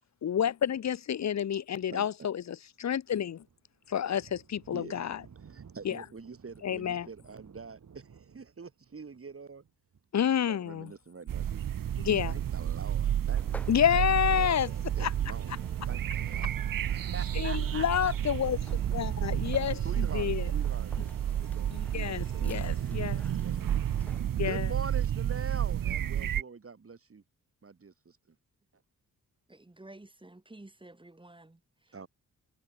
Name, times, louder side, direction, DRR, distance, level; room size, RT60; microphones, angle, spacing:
voice 1, 0.2-3.4 3.9-5.2 5.8-6.0 6.6-7.1 10.1-10.9 12.0-12.4 13.7-14.7 15.0-15.1 17.3-18.6 18.9-20.5 21.7-23.2 24.4-24.7, left 9 dB, 55° left, 0.8 m, -29 dB
Thunder, 2.9-12.0, right 6 dB, 60° right, 7.3 m, -57 dB
voice 2, 4.7-5.1 5.4-9.6 10.2-11.6 12.3-13.5 13.9-14.0 14.3-18.1 19.8-20.9 21.4-23.6 24.4-27.2 27.6-28.2 31.9-32.1, right 5 dB, 40° right, 7.2 m, -45 dB
sound 1, 11.3-26.4, right 10 dB, 75° right, 1.2 m, -31 dB
sound 2, 13.3-24.6, left 1 dB, 5° left, 4.0 m, -53 dB
voice 3, 29.5-32.0, right 2 dB, 15° right, 7.0 m, -52 dB
wide cardioid pair, 120°, 34 cm